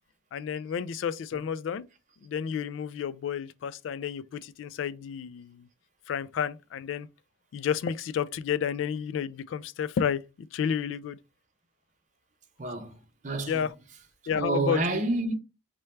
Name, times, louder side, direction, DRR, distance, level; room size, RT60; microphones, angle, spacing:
voice 1, 0.3-1.8 2.2-5.7 6.1-7.1 7.5-10.2 10.5-11.2 13.5-13.7 14.3-14.8, left 7 dB, 90° left, 0.3 m, -31 dB
voice 2, 12.6-13.0 13.2-13.7 14.4-15.3, right 2 dB, 40° right, 0.7 m, -29 dB
3.2 x 2.2 x 4.2 m
head